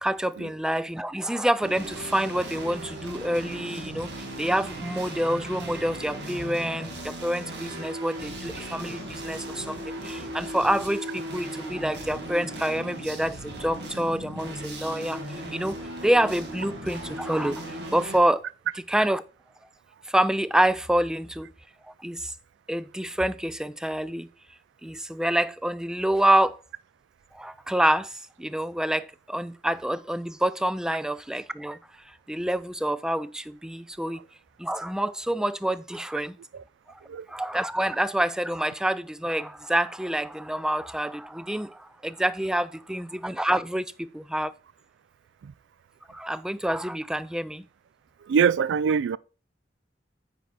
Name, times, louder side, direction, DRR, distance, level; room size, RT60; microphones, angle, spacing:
voice 1, 0.0-15.2 15.5-18.4 18.7-19.2 20.1-21.5 21.9-22.3 22.7-24.3 24.8-26.6 27.3-31.8 32.1-34.2 34.6-36.4 36.9-37.0 37.3-44.5 46.1-47.6, right 1 dB, 5° right, 0.3 m, -27 dB
sound 1, 1.6-18.2, right 1 dB, 65° right, 1.9 m, -37 dB
voice 2, 48.3-49.2, right 7 dB, 80° right, 0.3 m, -22 dB
9.2 x 4.7 x 3.9 m
head